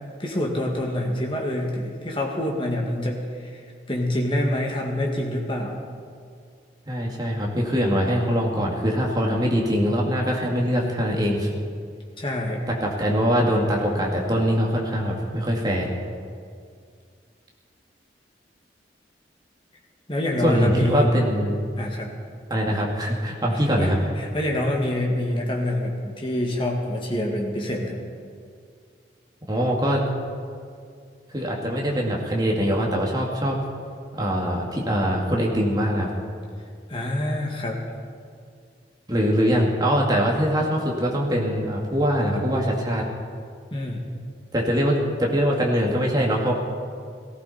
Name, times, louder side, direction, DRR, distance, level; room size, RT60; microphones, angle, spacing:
voice 1, 0.2-3.2 3.9-5.8 12.2-12.6 20.1-21.1 21.8-22.1 23.5-23.9 24.2-28.0 36.9-37.8 43.7-44.0, left 1 dB, 30° left, -1 dB, 2.0 m, -26 dB
voice 2, 6.9-11.5 12.7-15.9 20.4-21.6 22.5-24.0 29.5-30.0 31.3-33.6 34.1-36.1 39.1-43.0 44.5-46.5, equal, 20° right, -2 dB, 2.2 m, -23 dB
18.0 x 15.0 x 4.3 m, 2.2 s
head